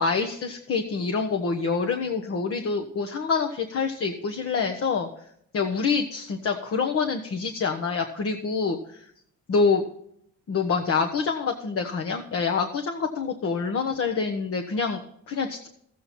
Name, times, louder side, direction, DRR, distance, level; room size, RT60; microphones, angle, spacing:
voice 1, 0.0-5.1 5.5-9.0 9.5-9.8 10.5-15.7, left 5 dB, 50° left, 5 dB, 1.0 m, -26 dB
14.0 x 7.6 x 4.3 m, 0.70 s
cardioid pair, 90°, 30 cm